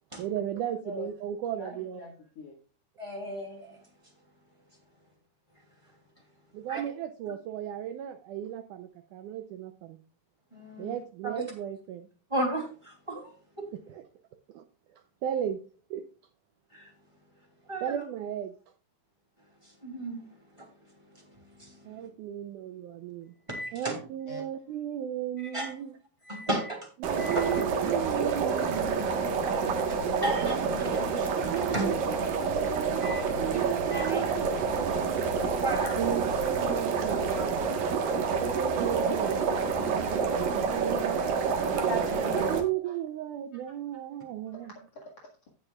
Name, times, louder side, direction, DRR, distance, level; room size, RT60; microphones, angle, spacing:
voice 1, 0.2-2.0 6.5-10.0 10.8-12.1 13.9-14.0 14.5-14.6 14.9-15.6 15.9-16.0 17.8-18.5 21.9-23.3 23.7-26.0 27.0-29.4 30.4-31.1 31.4-32.0 32.4-35.3 36.0-37.7 38.4-41.9 42.4-44.7, right 10 dB, 80° right, 8 dB, 1.8 m, -35 dB
voice 2, 1.6-2.6 24.3-24.4 35.6-35.9 36.7-37.2 38.3-38.4 39.9-40.3 43.5-43.6 44.5-45.5, left 2 dB, 50° left, -2 dB, 2.5 m, -45 dB
voice 3, 3.0-3.8 6.7-6.8 10.5-10.9 11.2-11.4 12.3-13.7 16.7-16.9 17.7-18.0 19.6-20.2 20.5-20.7 21.6-22.1 23.5-24.0 25.5-25.7 26.2-26.8 27.2-27.6 29.5-30.7 30.9-31.3 31.7-31.9 33.0-34.2 35.4-36.0 41.9-42.5, right 1 dB, 10° right, 1 dB, 2.4 m, -34 dB
sound 1, 27.0-42.6, right 5 dB, 65° right, 2.9 m, -28 dB
17.5 x 6.7 x 2.4 m, 0.37 s
omnidirectional pair, 4.4 m